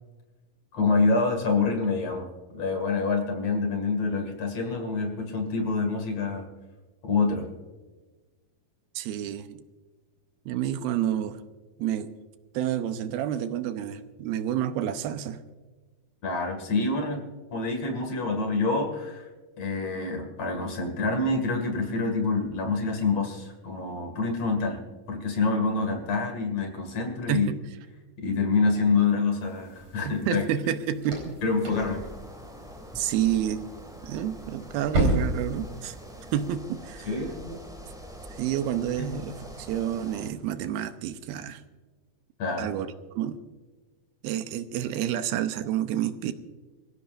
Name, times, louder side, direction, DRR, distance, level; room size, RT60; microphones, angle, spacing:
voice 1, 0.7-2.3 2.5-6.5 7.0-7.5 16.2-17.2 17.5-19.3 19.6-24.8 25.1-27.5 28.2-30.4 31.4-32.0 37.1-37.6 39.0-39.1 42.4-42.7, left 4 dB, 50° left, 2.9 m, -26 dB
voice 2, 9.0-9.6 10.5-11.4 11.8-12.1 12.5-15.4 27.3-27.6 30.1-31.4 33.0-33.6 34.0-36.0 36.3-37.1 38.3-41.6 42.6-43.4 44.2-46.3, right 10 dB, 85° right, 2.7 m, -29 dB
sound 1, 29.4-36.5, right 1 dB, 45° right, 5.2 m, -33 dB
sound 2, 31.7-40.3, equal, 5° right, 0.3 m, -44 dB
25.5 x 15.5 x 2.5 m
omnidirectional pair, 4.3 m